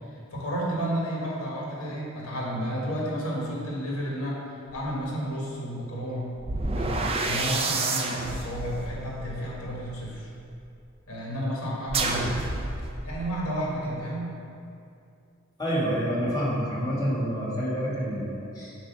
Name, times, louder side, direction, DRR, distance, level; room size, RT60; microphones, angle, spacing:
voice 1, 0.1-4.4 4.7-6.4 6.7-10.3 11.1-12.4 13.0-14.4, equal, 90° left, -4 dB, 1.5 m, -31 dB
sound 1, 4.7-4.9 6.4-10.5 11.9-13.3, right 3 dB, 30° right, 0.5 m, -30 dB
voice 2, 15.6-18.7, equal, 20° left, -7 dB, 1.4 m, -28 dB
7.6 x 2.7 x 5.8 m, 2.6 s
head